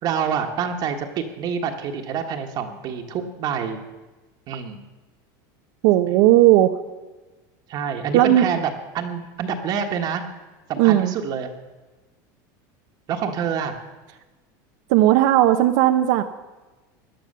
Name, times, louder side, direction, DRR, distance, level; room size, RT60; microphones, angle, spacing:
voice 1, 0.0-3.8 4.5-4.9 7.7-10.2 10.7-11.5 13.1-13.8, right 7 dB, 40° right, 3 dB, 1.4 m, -27 dB
voice 2, 5.8-6.7 8.1-8.5 10.8-11.1 14.9-16.2, right 14 dB, 65° right, 6 dB, 0.8 m, -16 dB
17.0 x 11.0 x 6.7 m, 1.2 s
supercardioid pair, 155°, 11 cm